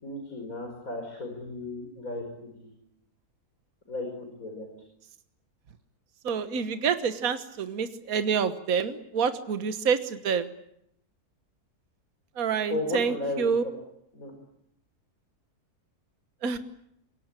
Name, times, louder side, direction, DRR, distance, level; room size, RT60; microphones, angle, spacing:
voice 1, 0.0-2.7 3.9-4.7 12.7-13.7 14.1-14.3, left 2 dB, 60° left, 3 dB, 5.5 m, -35 dB
voice 2, 6.2-10.5 12.4-13.6 16.4-16.6, right 6 dB, 65° right, 10 dB, 1.7 m, -27 dB
26.5 x 23.5 x 8.9 m, 0.76 s
omnidirectional pair, 1.6 m